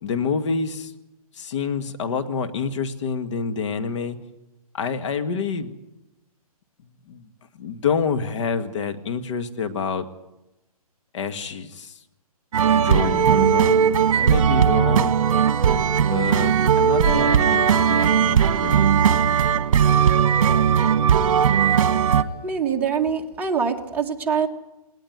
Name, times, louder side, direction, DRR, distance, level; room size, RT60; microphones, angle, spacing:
voice 1, 0.0-0.9 1.3-4.2 4.7-5.7 7.1-7.3 7.5-10.0 11.1-11.9 12.7-13.9 14.1-15.2 16.0-18.9, left 5 dB, 50° left, 8 dB, 1.8 m, -27 dB
sound 1, 12.5-22.2, right 8 dB, 55° right, 1.5 m, -18 dB
voice 2, 22.4-24.5, right 6 dB, 10° right, -1 dB, 1.9 m, -24 dB
19.5 x 19.0 x 9.4 m, 0.96 s
hypercardioid pair, 150°, 19 cm